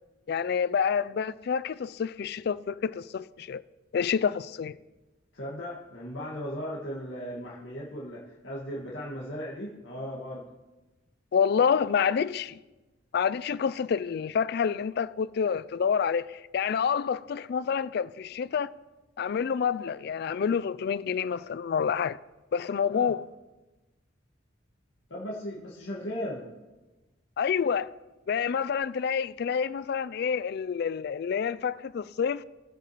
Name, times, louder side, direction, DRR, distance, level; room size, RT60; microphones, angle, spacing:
voice 1, 0.3-3.6 3.9-4.8 11.3-12.6 13.1-18.7 19.2-22.2 22.5-23.2 27.4-27.9 28.3-32.4, left 7 dB, 55° left, 0.3 m, -28 dB
voice 2, 5.3-10.4 22.9-23.1 25.1-26.5, equal, 85° left, 1.8 m, -37 dB
20.0 x 7.9 x 3.1 m
head